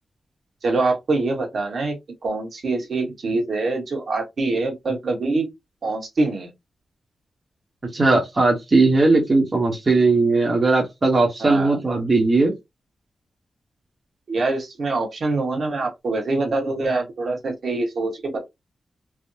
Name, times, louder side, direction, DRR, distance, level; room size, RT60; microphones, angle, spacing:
voice 1, 0.6-2.0 2.2-5.5 5.8-6.5 11.4-11.8 14.3-18.4, right 3 dB, 60° right, 1.1 m, -24 dB
voice 2, 7.9-12.5, right 3 dB, 30° right, 0.9 m, -18 dB
3.4 x 2.0 x 2.6 m
wide cardioid pair, 135°, 0 cm